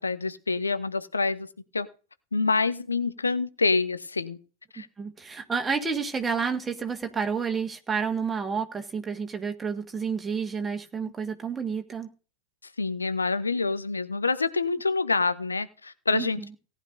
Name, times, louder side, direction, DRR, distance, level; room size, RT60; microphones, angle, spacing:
voice 1, 0.0-1.5 1.7-1.9 2.3-4.4 4.7-4.9 12.6-16.4, left 4 dB, 80° left, 13 dB, 0.7 m, -26 dB
voice 2, 5.0-12.1 16.1-16.3, right 5 dB, 15° right, 4 dB, 1.7 m, -30 dB
18.0 x 11.0 x 2.6 m, 0.36 s
figure-of-eight pair, 90°, 0 cm